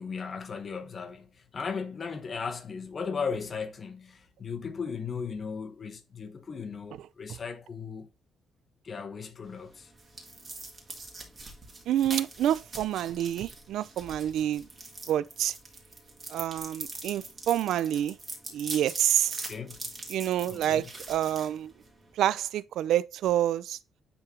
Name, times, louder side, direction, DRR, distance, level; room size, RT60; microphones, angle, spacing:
voice 1, 0.0-8.1 8.8-9.9 19.5-19.9 20.4-20.9, left 5 dB, 35° left, 1.0 m, -37 dB
sound 1, 9.5-22.1, right 2 dB, 25° right, 1.7 m, -43 dB
voice 2, 11.9-14.7 15.1-15.5 16.3-18.2 18.5-19.4 20.1-21.7 22.2-23.8, right 11 dB, 80° right, 0.3 m, -28 dB
9.7 x 3.7 x 2.9 m
cardioid pair, 140°, 0 cm